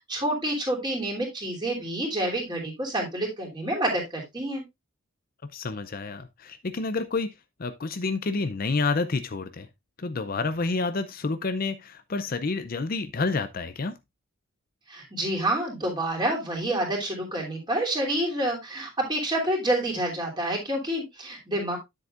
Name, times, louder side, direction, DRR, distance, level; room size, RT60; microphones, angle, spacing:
voice 1, 0.1-4.6 14.9-21.8, right 1 dB, 20° right, 3.2 m, -28 dB
voice 2, 5.5-7.3 7.6-9.7 10.0-13.9, left 3 dB, 40° left, 0.5 m, -29 dB
9.9 x 7.8 x 2.5 m
head